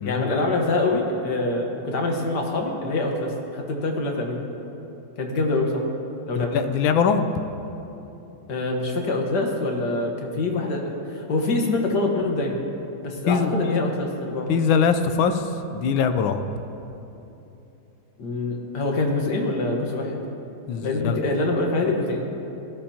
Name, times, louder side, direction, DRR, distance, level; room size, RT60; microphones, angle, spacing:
voice 1, 0.1-4.4 5.2-5.8 6.3-6.6 8.5-12.6 13.0-14.5 18.2-20.2 20.8-22.3, left 2 dB, 60° left, 1 dB, 1.9 m, -25 dB
voice 2, 6.4-7.3 13.3-13.8 14.5-16.4 20.7-21.2, left 6 dB, 90° left, 9 dB, 1.5 m, -22 dB
18.0 x 14.0 x 2.9 m, 2.9 s
omnidirectional pair, 2.1 m